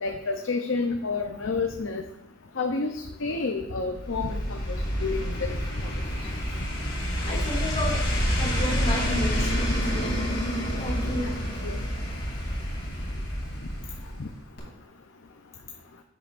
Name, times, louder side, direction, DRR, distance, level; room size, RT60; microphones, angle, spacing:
voice 1, 0.0-2.0 2.6-5.6 7.3-7.4 11.6-11.8 14.2-14.3, left 4 dB, 75° left, 4 dB, 0.6 m, -30 dB
sound 1, 3.9-14.3 14.6-14.7, equal, 50° left, 2.9 m, -28 dB
voice 2, 7.2-10.2 10.8-11.4, left 1 dB, 30° left, -3 dB, 2.2 m, -33 dB
10.5 x 8.6 x 2.5 m, 0.80 s
head